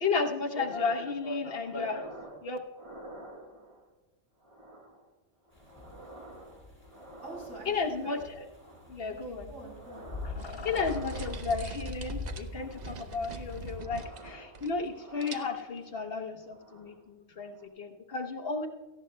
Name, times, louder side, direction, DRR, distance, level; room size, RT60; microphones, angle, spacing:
voice 1, 0.0-2.1 2.4-2.6 7.7-8.2 8.9-9.4 10.4-18.7, left 4 dB, 55° left, 5 dB, 1.1 m, -33 dB
sound 1, 1.6-2.5 2.7-3.9 4.4-5.1 5.4-8.0 8.4-9.1 9.5-10.4 10.8-11.8 12.5-13.0 13.5-16.0 16.4-17.0 17.5-17.7, right 1 dB, 25° right, 1.4 m, -50 dB
sound 2, 5.5-13.8, left 2 dB, 10° left, 4.6 m, -43 dB
voice 2, 7.2-8.2 9.1-10.1, right 1 dB, 80° right, -2 dB, 5.1 m, -45 dB
sound 3, 10.4-15.0 15.2-15.8, right 4 dB, 45° right, 0.6 m, -45 dB
18.0 x 14.5 x 2.2 m, 1.3 s
omnidirectional pair, 1.3 m